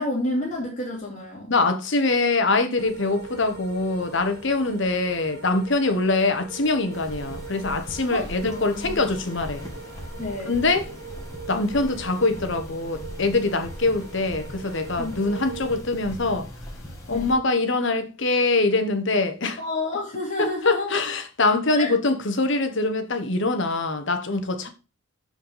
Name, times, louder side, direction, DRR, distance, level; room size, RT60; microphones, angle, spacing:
voice 1, 0.0-1.5 8.1-9.0 10.2-10.5 15.0-15.2 17.1-17.3 19.6-20.9 21.7-21.9, left 2 dB, 35° left, 2.6 m, -29 dB
voice 2, 1.5-9.7 10.4-10.9 11.5-16.5 17.1-19.6 20.4-24.7, left 3 dB, 55° left, 1.1 m, -23 dB
sound 1, 2.8-15.8, right 5 dB, 50° right, 1.4 m, -41 dB
sound 2, 6.9-17.3, equal, 15° left, 2.3 m, -39 dB
6.9 x 5.3 x 5.6 m
head